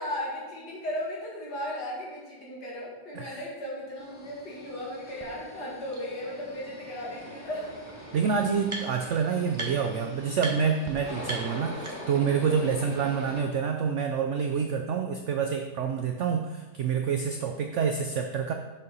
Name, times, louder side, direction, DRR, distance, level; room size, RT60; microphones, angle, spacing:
voice 1, 0.0-7.7 12.6-12.9, left 1 dB, 70° left, -5 dB, 2.7 m, -36 dB
sound 1, 4.0-13.4, equal, 10° left, 1.6 m, -43 dB
sound 2, 5.2-5.3 5.9-6.0 7.3-7.4 7.6-9.2 9.5-10.0 10.4-10.5 10.8-10.9 11.2-12.3, right 2 dB, 20° right, 0.8 m, -38 dB
voice 2, 8.1-18.5, right 6 dB, 80° right, 5 dB, 0.6 m, -27 dB
6.8 x 5.3 x 5.4 m, 1.2 s
omnidirectional pair, 1.8 m